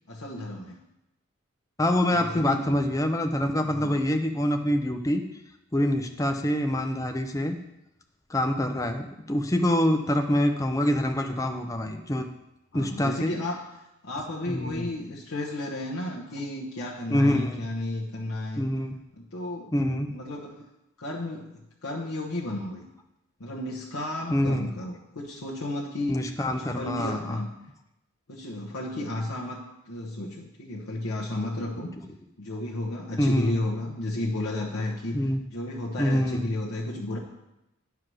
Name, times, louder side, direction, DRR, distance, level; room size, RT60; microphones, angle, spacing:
voice 1, 0.1-0.8 2.1-2.7 3.7-4.0 12.7-13.6 14.0-18.7 19.2-19.7 20.1-20.6 21.0-22.8 23.4-26.2 26.5-27.5 28.3-31.9 32.4-37.2, left 1 dB, 85° left, -4 dB, 1.0 m, -33 dB
voice 2, 1.8-5.2 5.7-7.6 8.3-12.3 12.7-13.3 14.5-14.9 17.1-17.6 18.6-19.0 19.7-20.1 24.3-24.7 26.1-27.4 33.2-33.5 35.1-35.4 36.0-36.5, left 1 dB, 15° left, 5 dB, 0.5 m, -25 dB
9.4 x 4.8 x 6.1 m, 0.90 s
head